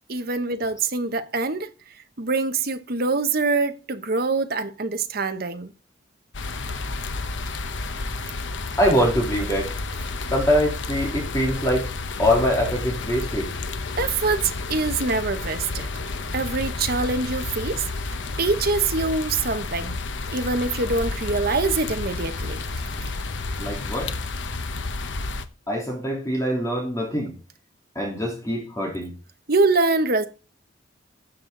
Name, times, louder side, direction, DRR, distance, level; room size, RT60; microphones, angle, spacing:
voice 1, 0.1-1.7 2.2-5.7 14.0-15.9 16.3-17.9 18.4-20.0 20.3-22.6 23.0-23.1 29.5-30.3, right 3 dB, 50° right, 1.1 m, -24 dB
sound 1, 6.3-25.4, left 3 dB, 70° left, 1.0 m, -31 dB
voice 2, 8.8-9.6 10.3-11.8 12.2-13.5 23.6-24.1 25.7-27.3 27.9-29.1, equal, 15° left, 3.6 m, -23 dB
13.0 x 7.7 x 3.9 m
head